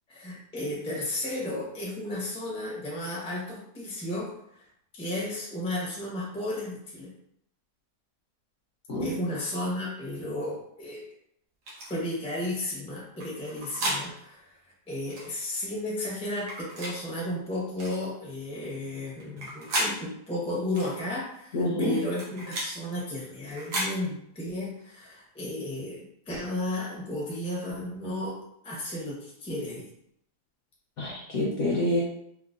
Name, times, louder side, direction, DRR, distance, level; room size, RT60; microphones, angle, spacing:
voice 1, 0.1-4.6 4.9-7.1 9.0-11.0 11.9-14.6 14.9-28.3 28.6-29.9, left 1 dB, 5° left, -5 dB, 0.4 m, -33 dB
sound 1, 11.7-11.9 13.2-14.0 15.1-15.3 16.4-17.0 17.8-18.0 19.2-19.9 20.8-20.9 21.9-22.7 23.5-23.9, right 1 dB, 85° right, 1.7 m, -32 dB
voice 2, 21.5-22.0 31.0-32.0, left 1 dB, 60° left, -5 dB, 0.8 m, -27 dB
4.7 x 2.2 x 2.5 m, 0.73 s
omnidirectional pair, 1.9 m